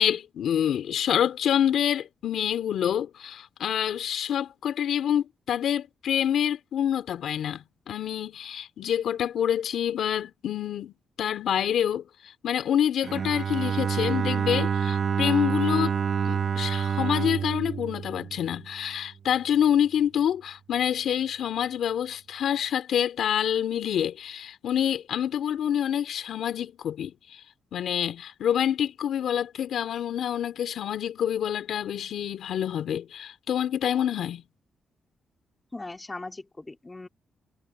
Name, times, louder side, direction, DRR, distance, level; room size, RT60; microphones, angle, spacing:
voice 1, 0.0-15.9 16.2-27.4 27.7-34.4, left 9 dB, 75° left, 2.9 m, -27 dB
Bowed string instrument, 13.0-19.0, right 7 dB, 55° right, 1.3 m, -28 dB
voice 2, 35.7-37.1, left 2 dB, 20° left, 2.6 m, -39 dB
cardioid pair, 90°, 0 cm